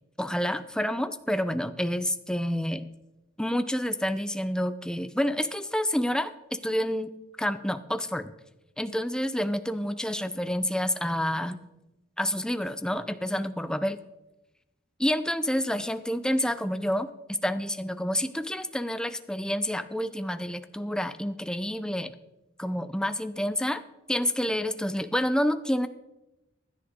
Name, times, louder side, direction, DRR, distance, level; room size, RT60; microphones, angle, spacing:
voice 1, 0.2-2.9 3.4-7.1 7.4-8.3 8.8-11.6 12.2-14.0 15.0-17.1 17.4-22.1 22.6-23.8 24.1-25.9, equal, 5° left, 11 dB, 0.6 m, -28 dB
16.5 x 11.5 x 3.8 m, 0.95 s
head